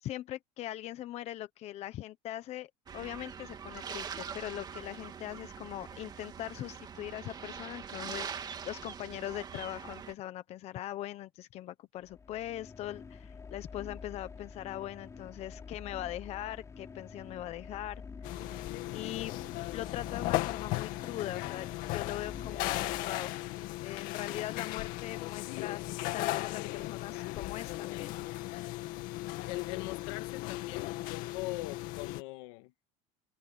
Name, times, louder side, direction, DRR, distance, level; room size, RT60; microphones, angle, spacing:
voice 1, 0.0-18.0 18.9-19.4 19.7-21.7 21.9-23.4 23.8-25.8 26.1-28.2, left 13 dB, 40° left, 1.1 m, -41 dB
sound 1, 2.9-10.1, right 7 dB, 25° right, 2.2 m, -43 dB
sound 2, 12.0-23.9, left 5 dB, 20° left, 6.2 m, -48 dB
sound 3, 18.2-32.2, left 18 dB, 60° left, 2.3 m, -37 dB
voice 2, 29.4-32.7, left 21 dB, 80° left, 1.8 m, -41 dB
cardioid pair, 145°, 16 cm